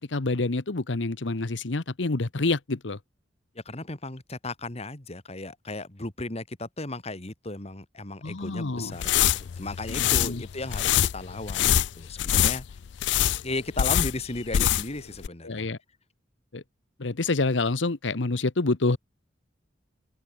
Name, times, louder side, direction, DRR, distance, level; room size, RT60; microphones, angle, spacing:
voice 1, 0.1-3.0 8.2-9.0 9.9-10.4 15.4-15.8 16.5-16.6 17.0-19.0, left 3 dB, 85° left, 1.1 m, -27 dB
voice 2, 3.7-12.6 13.4-15.7, left 2 dB, 35° left, 2.3 m, -35 dB
sound 1, 8.9-15.0 15.2-15.3, left 11 dB, 70° left, 0.4 m, -24 dB
head